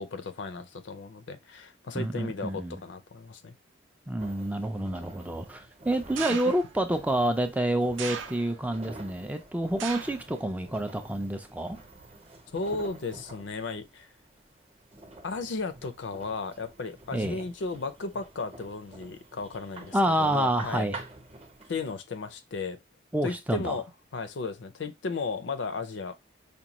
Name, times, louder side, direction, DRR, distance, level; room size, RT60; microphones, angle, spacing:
voice 1, 0.0-3.6 6.3-6.5 12.5-14.1 15.2-20.9 21.7-22.8 23.2-23.8 24.1-26.1, left 4 dB, 70° left, 0.5 m, -35 dB
voice 2, 1.9-2.8 4.1-11.8 17.1-17.4 19.9-21.0 23.1-23.8, right 1 dB, 10° right, 0.3 m, -28 dB
sound 1, 4.2-21.9, right 2 dB, 30° right, 0.7 m, -48 dB
sound 2, 6.2-6.8 8.0-8.8 9.8-10.3 10.7-11.2 12.0-12.1, right 7 dB, 80° right, 0.5 m, -38 dB
5.1 x 2.2 x 2.9 m
head